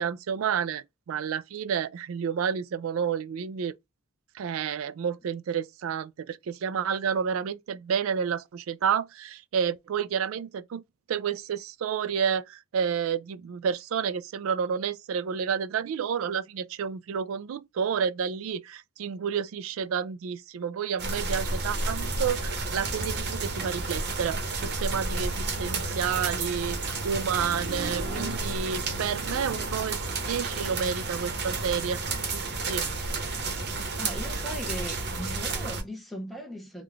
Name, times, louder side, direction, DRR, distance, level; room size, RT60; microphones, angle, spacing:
voice 1, 0.0-3.7 4.3-10.8 11.1-32.0 32.3-32.9, right 7 dB, 70° right, 0.3 m, -30 dB
sound 1, 21.0-35.8, right 3 dB, 55° right, 1.0 m, -31 dB
voice 2, 34.0-36.8, equal, ahead, 0.9 m, -38 dB
3.7 x 2.3 x 3.2 m
head